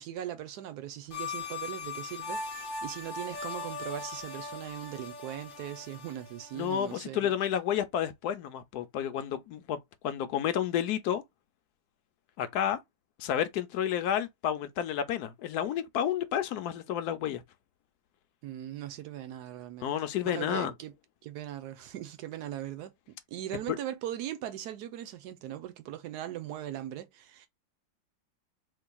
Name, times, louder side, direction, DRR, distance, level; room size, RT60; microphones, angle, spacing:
voice 1, 0.0-7.4 18.4-19.9 20.2-20.9 21.2-22.9 23.3-27.5, right 12 dB, 70° right, 1.2 m, -39 dB
sound 1, 1.1-7.0, left 4 dB, 40° left, 0.8 m, -40 dB
voice 2, 6.5-11.2 12.4-12.8 13.2-17.4 19.8-20.7 23.7-23.8, left 10 dB, 70° left, 1.0 m, -31 dB
4.4 x 2.8 x 2.2 m
omnidirectional pair, 1.9 m